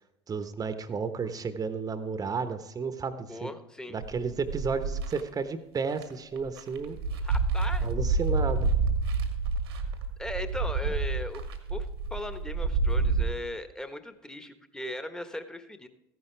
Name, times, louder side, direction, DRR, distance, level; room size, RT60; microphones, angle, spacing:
voice 1, 0.3-3.5 3.9-7.0 7.8-8.7, right 5 dB, 30° right, 10 dB, 1.1 m, -32 dB
voice 2, 3.3-3.9 7.2-7.9 10.2-11.4 11.7-15.9, left 1 dB, 5° left, 9 dB, 1.4 m, -38 dB
sound 1, 4.0-5.2 5.9-6.0 6.4-13.2, right 4 dB, 80° right, 1.7 m, -28 dB
14.5 x 11.0 x 3.4 m, 0.94 s
hypercardioid pair, 65°, 13 cm